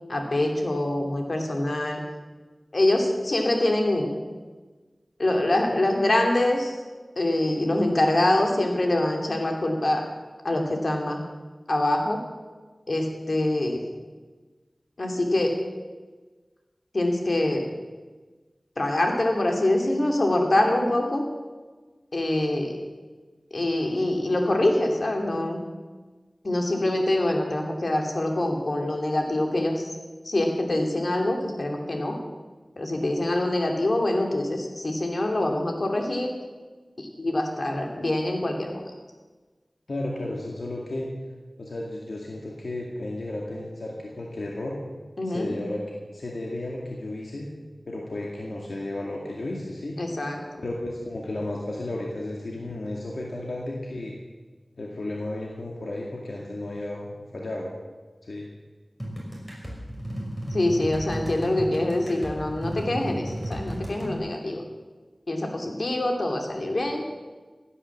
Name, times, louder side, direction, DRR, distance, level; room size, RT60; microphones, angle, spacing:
voice 1, 0.1-2.0 2.7-4.1 5.2-6.8 7.2-10.0 10.4-11.2 11.7-12.2 12.9-13.8 15.0-15.5 16.9-17.7 18.8-21.3 22.1-22.8 23.5-25.6 26.4-29.9 30.2-32.2 32.8-36.3 37.0-38.9 45.2-45.5 50.0-50.4 60.5-64.6 65.3-67.0, left 1 dB, 60° left, 2 dB, 2.8 m, -25 dB
voice 2, 39.9-41.1 41.6-44.8 45.3-45.8 46.1-47.5 47.9-50.0 50.6-54.1 54.8-57.7 58.2-58.5 61.6-61.8, left 1 dB, 80° left, -2 dB, 2.2 m, -33 dB
sound 1, 59.0-64.2, equal, 10° left, 5.6 m, -34 dB
16.5 x 9.9 x 7.4 m, 1.3 s
wide cardioid pair, 50°, 0 cm